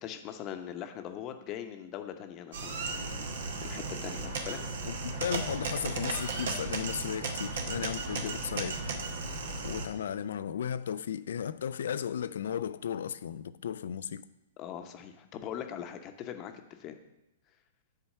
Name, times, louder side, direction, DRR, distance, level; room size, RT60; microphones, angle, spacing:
voice 1, 0.0-4.6 14.6-16.9, left 10 dB, 35° left, 0.9 m, -41 dB
sound 1, 2.5-9.9, right 3 dB, 65° right, 1.1 m, -35 dB
voice 2, 4.9-8.9 9.6-14.3, left 8 dB, 70° left, 0.4 m, -35 dB
7.1 x 4.4 x 6.6 m
hypercardioid pair, 120°, 0 cm